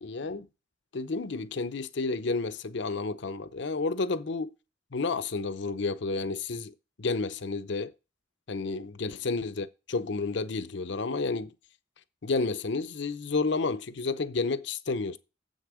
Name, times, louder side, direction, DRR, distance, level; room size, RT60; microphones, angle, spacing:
voice 1, 0.0-0.5 0.9-4.5 4.9-7.9 8.5-11.5 12.2-15.2, left 3 dB, 65° left, 0.7 m, -31 dB
7.6 x 6.5 x 4.8 m
head